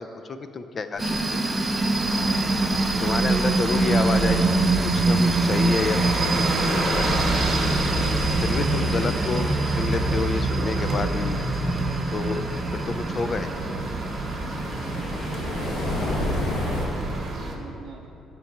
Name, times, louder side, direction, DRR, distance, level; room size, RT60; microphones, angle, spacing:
voice 1, 0.0-1.4 3.0-4.7 4.9-7.3 8.4-11.4 12.1-12.5 12.7-13.5, left 4 dB, 30° left, 9 dB, 0.5 m, -29 dB
sound 1, 0.9-16.9, left 1 dB, 60° left, 1.7 m, -34 dB
sound 2, 1.0-17.3, right 2 dB, 15° right, 0.7 m, -26 dB
sound 3, 2.0-17.5, right 2 dB, 35° right, 1.1 m, -29 dB
voice 2, 14.9-18.1, right 6 dB, 70° right, -1 dB, 0.6 m, -46 dB
11.5 x 4.6 x 6.5 m, 3.0 s
cardioid pair, 150°, 0 cm